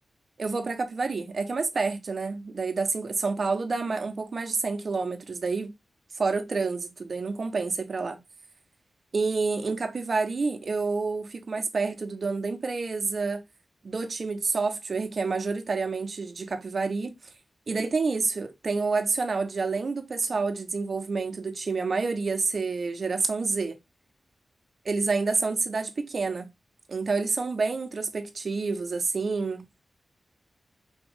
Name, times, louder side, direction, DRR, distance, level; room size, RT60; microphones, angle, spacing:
voice 1, 0.4-5.7 6.2-8.2 9.1-13.4 13.8-17.1 17.7-23.8 24.8-26.5 26.9-29.6, right 4 dB, 50° right, 1.0 m, -28 dB
4.4 x 3.1 x 3.6 m
wide cardioid pair, 100°, 0 cm